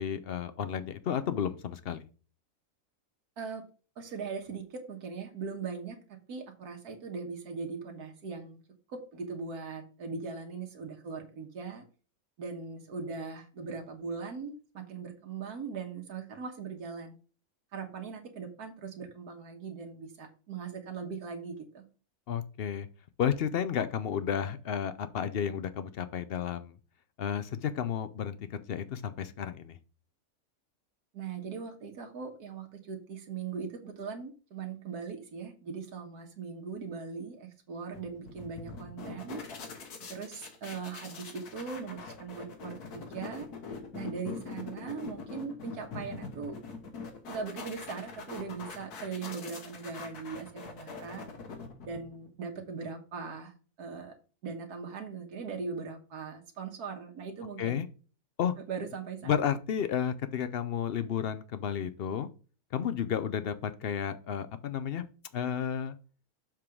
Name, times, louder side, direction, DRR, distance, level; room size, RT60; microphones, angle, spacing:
voice 1, 0.0-2.0 22.3-22.9 23.2-26.7 27.2-29.8 57.6-57.9 58.4-58.5 59.3-62.3 62.7-65.0 65.3-66.0, left 8 dB, 60° left, 12 dB, 0.6 m, -32 dB
voice 2, 4.0-8.6 8.9-11.8 12.4-17.1 17.7-21.8 31.1-39.4 40.1-43.5 43.9-46.6 47.3-51.3 51.8-54.2 54.4-57.8 58.7-59.4, right 5 dB, 85° right, 3 dB, 1.7 m, -40 dB
sound 1, 37.9-52.3, left 4 dB, 90° left, 1.7 m, -44 dB
7.4 x 3.8 x 4.9 m, 0.36 s
omnidirectional pair, 1.6 m